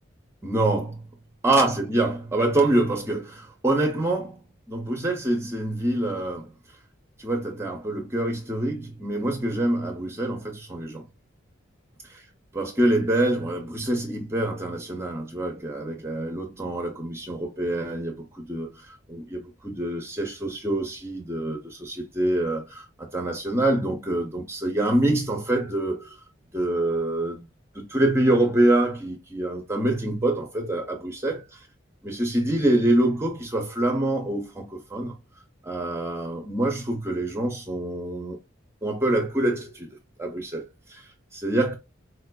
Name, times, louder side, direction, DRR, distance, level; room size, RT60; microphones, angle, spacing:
voice 1, 0.4-1.0 1.4-6.5 7.2-11.1 12.5-26.2 26.5-27.5 27.7-31.4 32.0-35.1 35.6-38.4 38.8-39.9 40.2-41.8, right 1 dB, 15° right, 0.5 m, -26 dB
4.4 x 2.4 x 2.3 m
head